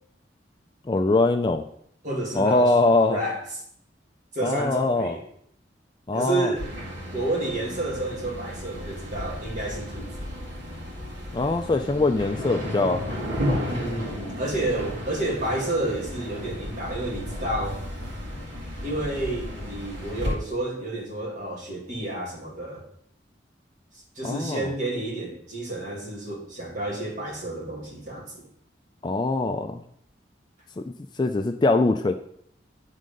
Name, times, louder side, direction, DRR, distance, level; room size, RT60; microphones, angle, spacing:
voice 1, 0.9-1.6 2.3-3.2 4.4-5.2 6.1-6.5 11.3-13.0 24.2-24.7 29.0-29.8 30.8-30.9 31.2-32.1, left 2 dB, 25° left, 7 dB, 0.3 m, -22 dB
voice 2, 2.0-2.8 3.1-3.4 4.3-5.2 6.1-6.6 7.1-10.1 13.7-17.8 18.8-22.8 24.2-28.5, right 2 dB, 40° right, -2 dB, 2.1 m, -30 dB
sound 1, 6.6-20.3, equal, 70° right, 2.0 m, -33 dB
9.2 x 3.7 x 5.2 m, 0.69 s
head